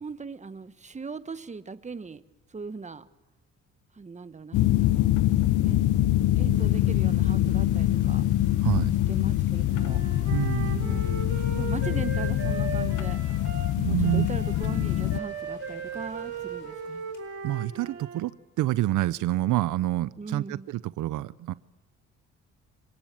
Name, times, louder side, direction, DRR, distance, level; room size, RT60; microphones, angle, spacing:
voice 1, 0.0-2.2 2.5-3.1 3.9-5.2 5.6-5.9 6.4-8.2 9.1-10.0 10.8-13.2 13.8-17.1 20.2-20.7, right 4 dB, 25° right, 12 dB, 1.2 m, -39 dB
sound 1, 4.5-15.2, left 14 dB, 80° left, 0.7 m, -24 dB
sound 2, 6.5-17.6, left 2 dB, 40° left, 4.7 m, -53 dB
voice 2, 8.6-9.0 10.3-11.0 13.8-14.3 17.4-21.5, right 15 dB, 80° right, 17 dB, 0.7 m, -27 dB
Wind instrument woodwind instrument, 9.7-18.2, right 5 dB, 55° right, 6.0 m, -37 dB
26.5 x 18.0 x 7.6 m, 1.1 s
cardioid pair, 90°, 30 cm